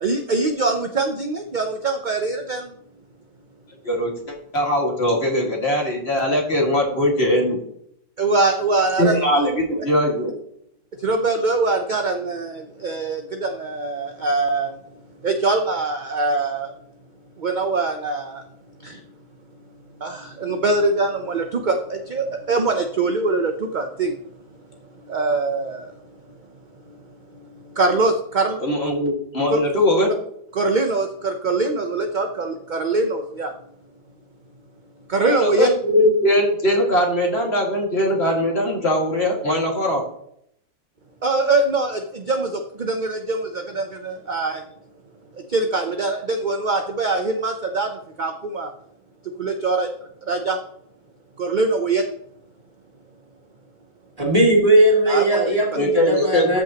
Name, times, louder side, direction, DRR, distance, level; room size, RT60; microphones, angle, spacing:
voice 1, 0.0-2.7 8.2-9.2 11.0-14.8 15.2-16.7 17.4-18.4 18.8-19.0 20.0-24.2 25.0-25.9 26.9-27.0 27.3-28.6 29.5-29.6 30.5-33.5 35.1-35.7 41.2-44.6 45.3-48.7 49.4-49.9 50.3-50.6 51.4-52.0 55.1-55.4, right 3 dB, 45° right, 5 dB, 0.7 m, -23 dB
voice 2, 3.8-7.6 9.0-10.4 28.6-30.1 35.2-40.0 55.4-55.5 55.7-56.6, left 1 dB, 40° left, -1 dB, 2.3 m, -20 dB
voice 3, 54.2-56.6, right 1 dB, 25° right, -3 dB, 2.4 m, -18 dB
13.5 x 6.3 x 2.9 m, 0.70 s
omnidirectional pair, 1.6 m